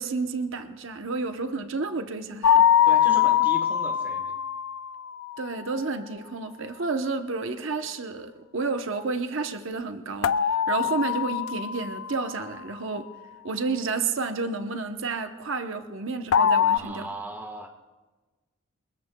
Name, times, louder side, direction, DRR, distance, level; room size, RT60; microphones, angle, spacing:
voice 1, 0.0-2.6 5.4-13.1 13.4-17.1, right 4 dB, 70° right, 6 dB, 0.9 m, -31 dB
sound 1, 2.4-5.4 10.2-12.4 16.3-16.8, left 9 dB, 75° left, 0.4 m, -22 dB
voice 2, 2.9-4.4 16.7-17.7, right 1 dB, 10° right, 3 dB, 1.3 m, -38 dB
29.0 x 20.5 x 2.3 m, 1.3 s
head